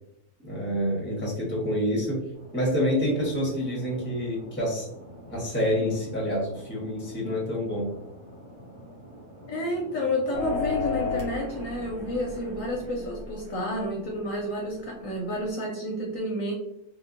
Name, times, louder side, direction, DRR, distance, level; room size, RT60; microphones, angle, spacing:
voice 1, 0.4-2.2 2.5-4.9 5.3-7.9, equal, 10° left, -4 dB, 1.0 m, -27 dB
sound 1, 2.3-12.9, right 1 dB, 85° right, 2.0 m, -47 dB
voice 2, 9.5-16.5, left 1 dB, 65° left, -1 dB, 1.0 m, -30 dB
sound 2, 10.3-15.5, left 4 dB, 70° right, 1.4 m, -35 dB
3.4 x 2.6 x 2.4 m, 0.81 s
omnidirectional pair, 1.6 m